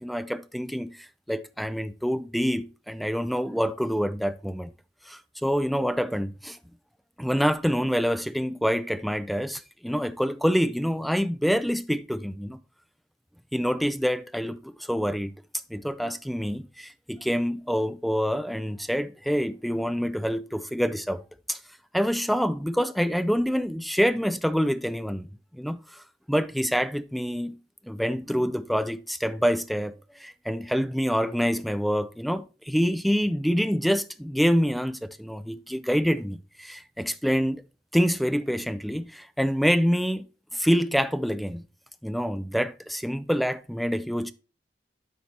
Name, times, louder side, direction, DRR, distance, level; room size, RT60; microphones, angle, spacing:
voice 1, 0.0-1.0 1.3-4.7 5.1-6.6 7.2-12.6 13.5-15.3 15.7-21.2 21.5-21.6 21.9-25.3 25.5-27.6 27.8-37.6 37.9-40.2 40.5-41.6 42.0-44.3, equal, ahead, 0.5 m, -26 dB
12.5 x 4.9 x 2.8 m
head